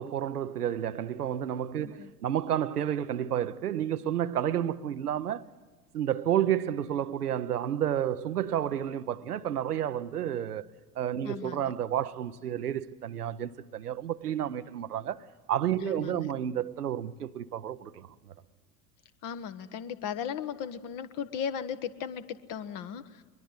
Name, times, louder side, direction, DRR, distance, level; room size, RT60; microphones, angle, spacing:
voice 1, 0.0-5.5 5.9-10.7 11.0-18.1, right 10 dB, 85° right, 0.7 m, -31 dB
voice 2, 11.2-11.7 15.8-16.3 19.2-23.2, left 8 dB, 45° left, 1.3 m, -37 dB
23.0 x 21.5 x 8.1 m
figure-of-eight pair, 75°, 45 cm